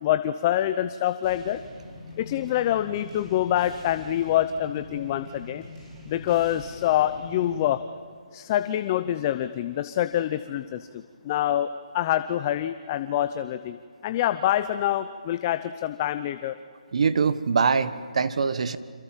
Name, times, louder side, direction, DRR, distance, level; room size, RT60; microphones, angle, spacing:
voice 1, 0.0-1.6 2.2-5.7 6.1-7.8 8.3-11.7 11.9-13.8 14.0-16.6, left 12 dB, 25° left, 11 dB, 0.7 m, -26 dB
sound 1, 1.2-7.7, left 1 dB, 20° right, 7.3 m, -44 dB
voice 2, 16.9-18.8, right 5 dB, 60° right, 13 dB, 1.4 m, -23 dB
28.5 x 27.0 x 7.5 m, 2.1 s
hypercardioid pair, 160°, 4 cm